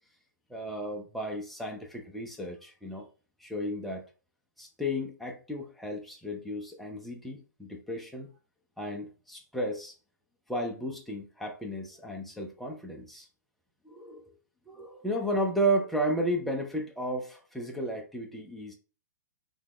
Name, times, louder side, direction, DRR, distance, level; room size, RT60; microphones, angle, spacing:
voice 1, 0.5-3.1 3.4-4.1 4.6-8.3 8.8-9.9 10.5-13.3 13.8-14.3 14.7-18.7, right 1 dB, ahead, 1 dB, 0.5 m, -33 dB
2.7 x 2.3 x 3.5 m, 0.35 s
figure-of-eight pair, 120°, 10 cm